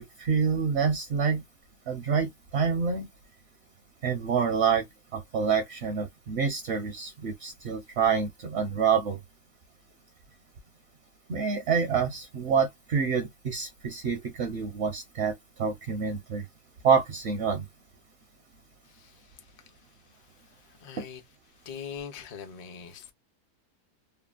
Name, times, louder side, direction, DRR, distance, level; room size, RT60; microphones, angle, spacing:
voice 1, 0.0-1.4 1.9-3.1 4.0-4.8 5.1-9.2 11.3-15.3 15.6-16.4 16.8-17.7 21.0-21.1, right 6 dB, 60° right, 0.7 m, -27 dB
voice 2, 18.9-19.4 20.7-21.2 21.6-23.1, left 7 dB, 55° left, 0.4 m, -42 dB
3.0 x 2.2 x 2.4 m
omnidirectional pair, 1.7 m